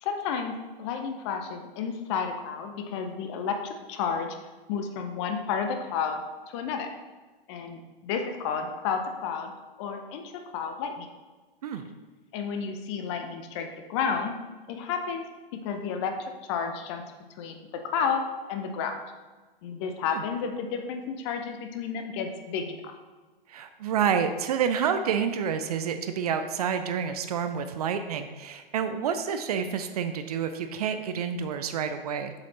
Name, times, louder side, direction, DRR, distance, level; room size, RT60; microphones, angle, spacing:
voice 1, 0.0-4.3 4.7-6.9 7.5-9.5 9.8-11.1 12.3-14.3 14.7-15.2 15.5-17.0 17.4-19.0 19.6-22.9, left 6 dB, 30° left, 5 dB, 0.7 m, -31 dB
voice 2, 23.5-32.3, right 7 dB, 40° right, 8 dB, 0.5 m, -28 dB
7.5 x 5.0 x 4.2 m, 1.3 s
figure-of-eight pair, 115°, 29 cm